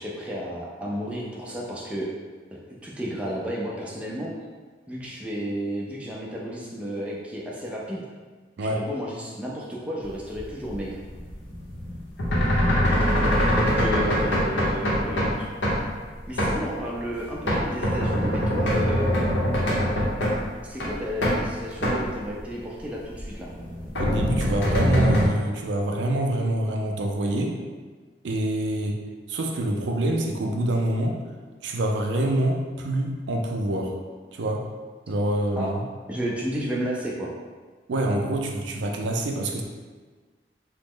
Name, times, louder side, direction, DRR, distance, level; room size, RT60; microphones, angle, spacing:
voice 1, 0.0-2.1 2.5-4.3 4.9-8.1 8.6-11.0 13.5-15.5 16.3-19.1 20.7-23.5 35.6-35.7 36.1-37.3, equal, 5° right, -4 dB, 0.3 m, -32 dB
sound 1, 10.4-15.4 15.6-15.8 16.4-16.8 17.1-20.5 20.8-21.4 21.7-22.1 22.4-22.5 23.1-25.3, equal, 80° left, 0.7 m, -23 dB
voice 2, 24.0-27.6 28.2-28.9 29.3-31.2 31.6-33.9 34.3-34.6 35.1-35.8 37.9-39.6, right 1 dB, 80° right, 1 dB, 0.4 m, -26 dB
3.0 x 2.0 x 3.6 m, 1.4 s
head